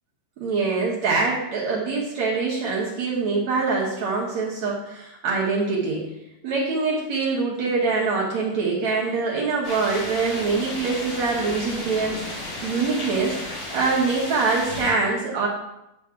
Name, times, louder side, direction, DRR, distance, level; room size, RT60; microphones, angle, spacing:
voice 1, 0.4-6.1 6.4-12.3 12.6-13.3 13.7-15.5, right 4 dB, 80° right, -5 dB, 1.6 m, -24 dB
sound 1, 9.6-14.9, left 1 dB, 50° left, 3.9 m, -34 dB
9.6 x 6.0 x 3.8 m, 0.89 s
omnidirectional pair, 5.3 m